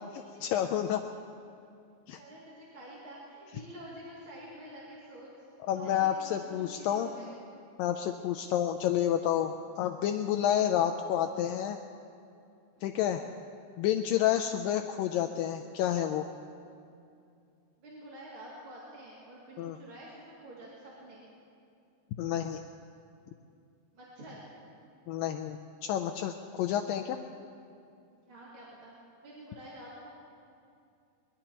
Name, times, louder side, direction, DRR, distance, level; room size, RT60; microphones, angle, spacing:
voice 1, 0.4-1.0 2.1-2.2 5.7-7.1 7.8-11.8 12.8-13.2 13.8-16.3 19.6-19.8 22.2-22.6 25.1-27.2, left 10 dB, 80° left, 6 dB, 2.1 m, -29 dB
voice 2, 2.1-5.3 5.7-7.4 12.8-13.0 17.8-21.2 23.9-24.4 28.3-28.9 29.2-30.1, right 1 dB, 40° right, -7 dB, 2.9 m, -48 dB
22.5 x 21.5 x 3.0 m, 2.5 s
omnidirectional pair, 4.3 m